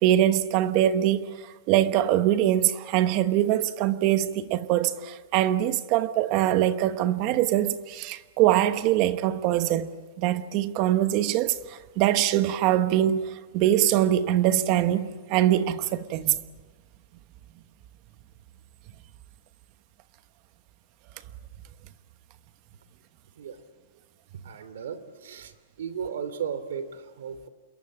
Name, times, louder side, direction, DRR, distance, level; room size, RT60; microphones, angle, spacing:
voice 1, 0.0-16.4, right 12 dB, 35° right, 1.1 m, -23 dB
voice 2, 24.4-25.5 25.8-27.5, right 7 dB, 90° right, 2.8 m, -35 dB
27.5 x 22.5 x 8.7 m
supercardioid pair, 170°, 0 cm